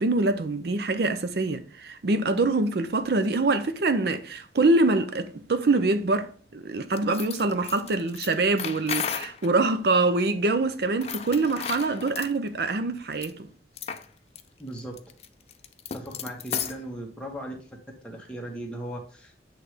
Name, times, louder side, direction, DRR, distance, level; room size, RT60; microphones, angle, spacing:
voice 1, 0.0-13.5, right 3 dB, 65° right, 0.5 m, -25 dB
sound 1, 7.0-9.5 10.9-12.3 13.1-13.3 13.8-14.1 14.4-14.5 14.8-16.8, left 8 dB, 35° left, 0.4 m, -34 dB
voice 2, 14.6-14.9 15.9-17.6 18.0-19.3, right 1 dB, 5° left, 1.2 m, -37 dB
8.0 x 3.2 x 4.8 m
head